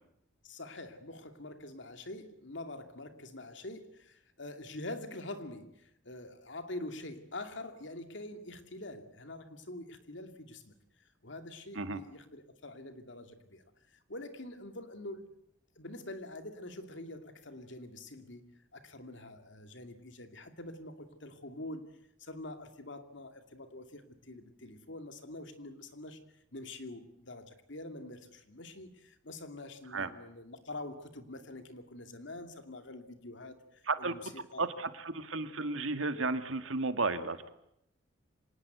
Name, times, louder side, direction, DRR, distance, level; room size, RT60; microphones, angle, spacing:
voice 1, 0.4-10.8 11.2-15.3 15.8-21.9 22.2-26.2 26.5-34.7, left 2 dB, 65° left, 7 dB, 2.5 m, -45 dB
voice 2, 34.6-37.5, right 3 dB, 85° right, 9 dB, 2.0 m, -33 dB
26.0 x 18.5 x 8.2 m, 0.79 s
head